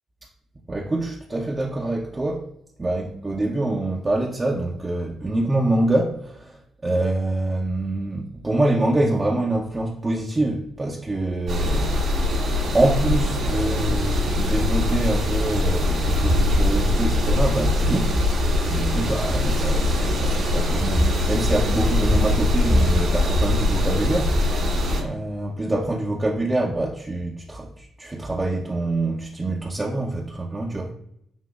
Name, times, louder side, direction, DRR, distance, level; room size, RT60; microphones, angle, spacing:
voice 1, 0.7-2.5 2.8-12.0 12.7-18.1 18.7-24.4 25.0-30.9, right 2 dB, 25° right, 0.7 m, -25 dB
sound 1, 11.5-25.0, left 1 dB, 65° right, 1.3 m, -21 dB
7.1 x 2.8 x 2.4 m
hypercardioid pair, 50°, 0 cm